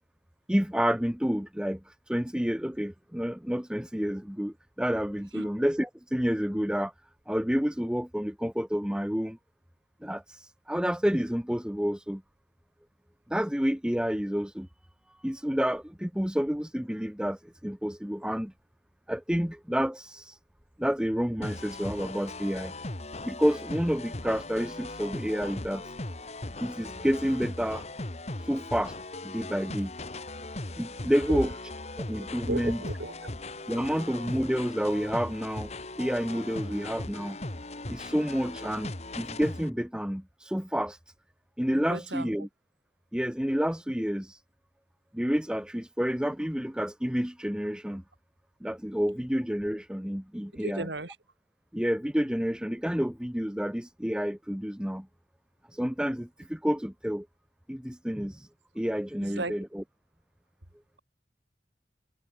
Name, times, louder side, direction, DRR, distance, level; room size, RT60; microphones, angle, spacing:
voice 1, 0.5-6.9 7.3-9.4 10.0-12.2 13.3-14.7 15.2-18.5 19.1-20.4 20.8-22.7 23.2-25.8 26.6-27.8 28.5-28.9 29.2-29.9 30.8-31.5 32.0-32.8 33.7-37.4 37.9-41.0 41.6-42.5 43.1-44.4 45.1-48.0 48.6-50.9 51.7-55.1 55.7-57.3 57.7-58.5 58.7-59.8, equal, 5° right, 0.8 m, -29 dB
sound 1, 21.4-39.7, left 2 dB, 40° left, 1.9 m, -39 dB
voice 2, 32.5-33.3 33.8-33.9 36.6-36.7 41.7-42.5 50.5-51.2 59.2-59.6, right 2 dB, 85° right, 3.6 m, -35 dB
head